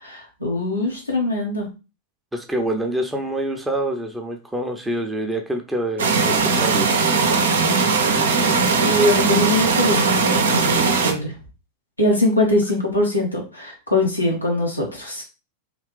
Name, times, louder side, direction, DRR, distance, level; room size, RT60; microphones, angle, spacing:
voice 1, 0.0-1.7 8.8-11.3 12.0-15.2, left 1 dB, 85° left, -2 dB, 1.4 m, -22 dB
voice 2, 2.3-7.3, right 1 dB, 5° right, 3 dB, 0.7 m, -26 dB
sound 1, 6.0-11.1, right 4 dB, 65° right, 0.7 m, -19 dB
3.7 x 3.2 x 3.2 m, 0.30 s
figure-of-eight pair, 90°, 0 cm